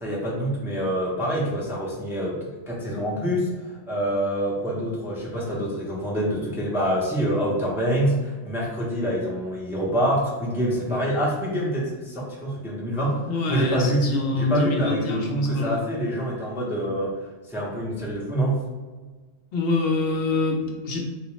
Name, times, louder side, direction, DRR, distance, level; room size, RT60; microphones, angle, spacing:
voice 1, 0.0-3.5 3.9-13.2 13.5-14.1 14.3-17.1 17.5-18.6, equal, 5° right, -5 dB, 0.5 m, -26 dB
voice 2, 13.3-15.8 19.5-21.1, left 3 dB, 65° left, 1 dB, 0.7 m, -26 dB
3.9 x 2.4 x 3.0 m, 1.3 s
omnidirectional pair, 1.1 m